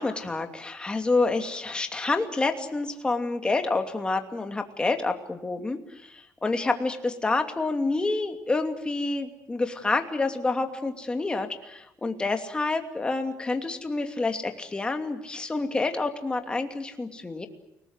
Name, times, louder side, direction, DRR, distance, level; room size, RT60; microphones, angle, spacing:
voice 1, 0.0-17.5, left 3 dB, 15° left, 5 dB, 2.7 m, -28 dB
30.0 x 19.5 x 8.0 m, 0.86 s
cardioid pair, 140°, 6 cm